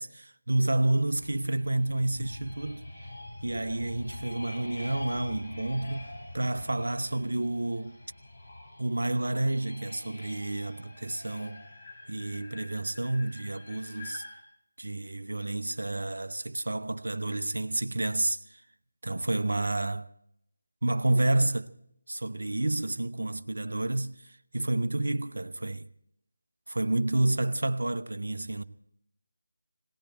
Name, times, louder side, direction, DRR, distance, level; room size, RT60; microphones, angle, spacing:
voice 1, 0.0-2.8 3.4-6.1 6.3-8.0 8.8-11.6 12.1-14.2 14.8-18.6 19.0-20.1 20.8-21.7 22.1-24.2 24.5-25.9 26.7-28.6, right 2 dB, 60° right, 0.8 m, -29 dB
sound 1, 1.1-14.4, left 1 dB, 20° left, 6.9 m, -45 dB
18.5 x 18.0 x 4.2 m
figure-of-eight pair, 160°, 0 cm